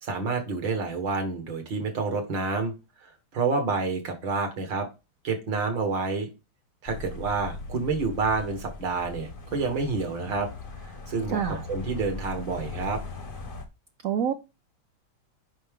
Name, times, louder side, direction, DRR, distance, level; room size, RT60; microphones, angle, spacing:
voice 1, 0.0-2.7 3.0-4.9 5.2-6.3 6.8-10.5 11.1-11.4 11.7-13.0, right 4 dB, 60° right, 2.5 m, -28 dB
sound 1, 6.9-13.7, left 3 dB, 35° left, 1.0 m, -39 dB
voice 2, 11.3-11.6 14.0-14.3, right 8 dB, 80° right, 0.7 m, -26 dB
8.8 x 5.7 x 3.8 m
omnidirectional pair, 2.3 m